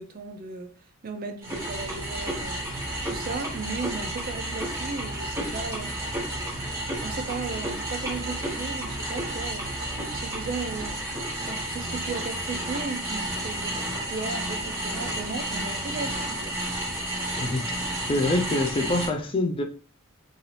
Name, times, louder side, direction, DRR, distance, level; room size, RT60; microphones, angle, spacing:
voice 1, 0.0-5.9 6.7-11.0 11.5-16.6, right 4 dB, 40° right, 0.4 m, -36 dB
sound 1, 1.4-19.1, right 1 dB, 15° right, 1.0 m, -31 dB
voice 2, 17.4-17.8 18.1-19.6, left 2 dB, 25° left, 0.3 m, -25 dB
2.7 x 2.4 x 3.1 m
head